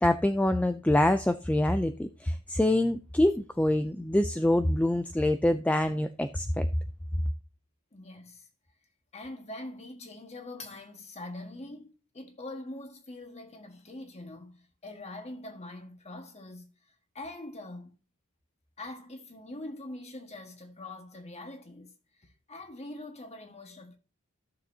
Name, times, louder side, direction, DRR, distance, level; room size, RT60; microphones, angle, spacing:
voice 1, 0.0-6.7, left 1 dB, 5° left, 0.4 m, -25 dB
voice 2, 7.9-8.5 9.1-16.7 17.1-17.9 18.8-21.9 22.2-24.0, left 2 dB, 30° left, 1.6 m, -43 dB
14.5 x 6.7 x 2.8 m
head